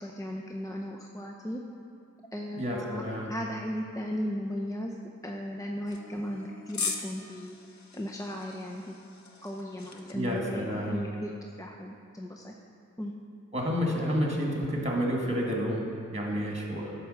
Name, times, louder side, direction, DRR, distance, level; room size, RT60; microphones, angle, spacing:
voice 1, 0.0-1.6 2.3-3.0 3.3-5.0 5.2-7.6 7.9-8.9 9.4-11.3 11.6-12.5 13.0-13.1, equal, 10° left, 0 dB, 0.6 m, -36 dB
voice 2, 2.5-3.3 10.1-11.0 13.5-16.9, equal, 20° right, -1 dB, 1.9 m, -30 dB
sound 1, 5.9-10.1, left 5 dB, 65° left, 0.8 m, -39 dB
11.0 x 4.6 x 6.4 m, 2.4 s
wide cardioid pair, 70°, 31 cm